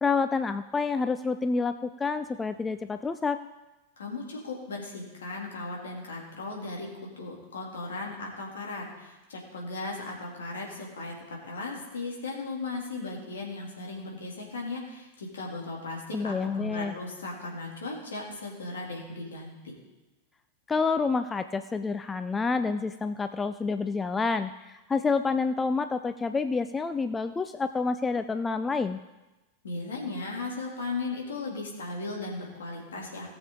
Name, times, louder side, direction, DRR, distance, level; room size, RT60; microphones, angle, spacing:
voice 1, 0.0-3.4 16.1-16.9 20.7-29.0, left 4 dB, 15° left, 11 dB, 0.4 m, -28 dB
voice 2, 4.0-6.9 7.2-11.1 11.4-19.7 29.6-33.3, left 3 dB, 65° left, -1 dB, 2.9 m, -37 dB
18.0 x 7.1 x 3.8 m, 1.1 s
figure-of-eight pair, 90°, 0 cm